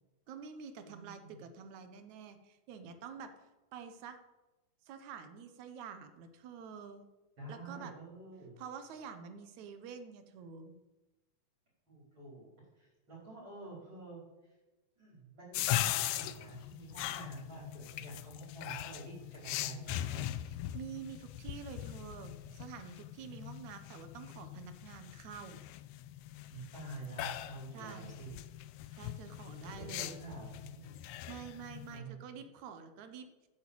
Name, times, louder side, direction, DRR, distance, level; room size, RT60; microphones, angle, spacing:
voice 1, 0.3-3.3 3.7-4.2 4.9-7.1 7.5-7.9 8.6-10.8 20.5-25.6 27.7-28.1 28.9-30.2 31.0-33.3, right 6 dB, 70° right, 9 dB, 2.3 m, -48 dB
voice 2, 0.9-1.4 7.4-8.6 11.9-12.5 12.8-14.5 15.0-20.3 26.5-28.3 29.8-30.9 31.9-32.2, right 3 dB, 35° right, -7 dB, 5.6 m, -48 dB
sound 1, 15.5-32.0, left 14 dB, 80° left, 1.8 m, -40 dB
9.5 x 8.7 x 8.5 m, 1.1 s
omnidirectional pair, 3.7 m